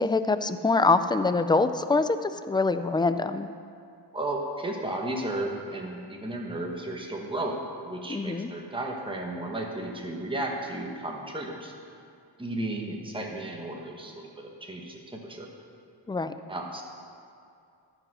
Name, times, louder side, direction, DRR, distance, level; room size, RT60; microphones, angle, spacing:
voice 1, 0.0-3.5 8.1-8.5 16.1-16.3, left 3 dB, 10° left, 11 dB, 0.3 m, -24 dB
voice 2, 4.1-7.6 7.8-11.7 12.4-15.5 16.5-16.8, right 1 dB, 10° right, 0 dB, 1.3 m, -34 dB
13.5 x 5.3 x 6.3 m, 2.4 s
wide cardioid pair, 90°, 43 cm